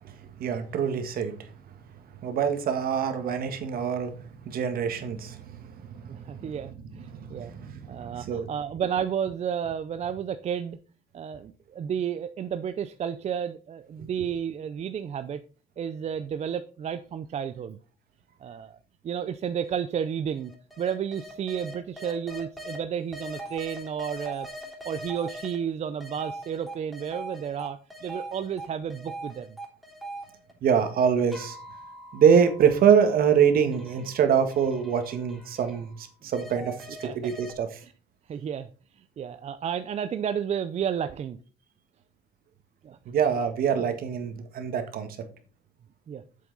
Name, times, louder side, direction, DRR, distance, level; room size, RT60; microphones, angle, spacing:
voice 1, 0.4-1.4 2.2-4.1 4.4-6.5 7.1-8.5 30.6-31.6 32.1-37.7 43.0-45.1, right 7 dB, 60° right, 8 dB, 1.7 m, -25 dB
voice 2, 6.1-7.5 7.9-10.8 11.1-15.4 15.8-17.8 18.4-18.8 19.0-20.5 20.8-24.5 24.9-29.6 37.0-37.3 37.8-37.9 38.3-38.7 39.2-41.4 42.8-43.0 43.7-43.9 46.1-46.2, right 8 dB, 40° right, 10 dB, 0.6 m, -32 dB
sound 1, 19.6-19.7 20.4-22.8 23.1-25.5 26.0-28.6 28.9-30.9 31.3-36.0 36.3-37.5, right 1 dB, ahead, 3.4 m, -42 dB
7.9 x 7.6 x 4.0 m, 0.38 s
cardioid pair, 110°, 17 cm